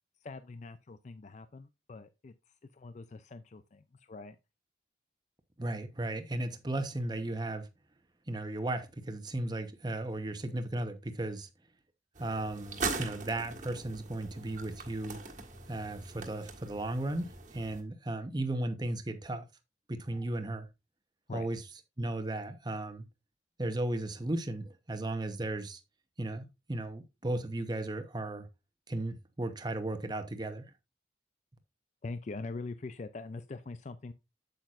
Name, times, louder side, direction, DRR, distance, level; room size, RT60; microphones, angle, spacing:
voice 1, 0.2-4.4 21.3-21.5 32.0-34.1, left 3 dB, 40° left, 0.4 m, -43 dB
voice 2, 5.6-7.7 8.3-11.5 12.2-15.2 15.7-19.4 19.9-20.7 21.3-21.6 22.0-23.0 23.6-25.8 26.2-28.5 28.9-30.7, right 1 dB, 25° right, 0.9 m, -35 dB
sound 1, 12.2-17.8, right 4 dB, 40° right, 1.6 m, -41 dB
8.5 x 8.0 x 2.5 m
head